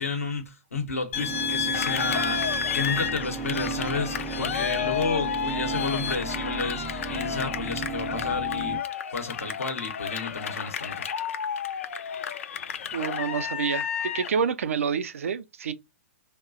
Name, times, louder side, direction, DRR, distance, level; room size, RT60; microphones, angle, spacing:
voice 1, 0.0-8.8 9.1-11.1, left 4 dB, 85° left, 0.8 m, -31 dB
sound 1, 1.1-6.2, left 5 dB, 45° left, 0.7 m, -32 dB
sound 2, 1.1-8.8, right 5 dB, 5° right, 0.4 m, -35 dB
Cheering, 1.7-14.4, left 8 dB, 70° left, 0.3 m, -32 dB
voice 2, 12.9-15.7, right 6 dB, 75° right, 0.4 m, -28 dB
2.9 x 2.1 x 2.4 m
hypercardioid pair, 115°, 7 cm